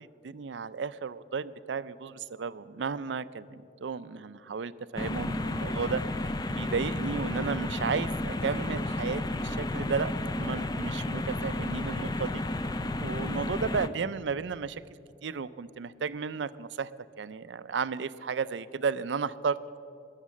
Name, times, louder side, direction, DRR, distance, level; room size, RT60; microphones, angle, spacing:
voice 1, 0.0-12.4 13.0-14.8 15.2-16.9 17.2-19.8, right 5 dB, 75° right, 16 dB, 0.5 m, -34 dB
sound 1, 5.0-13.9, left 1 dB, 20° left, 0.4 m, -32 dB
20.0 x 7.4 x 7.4 m, 2.5 s
head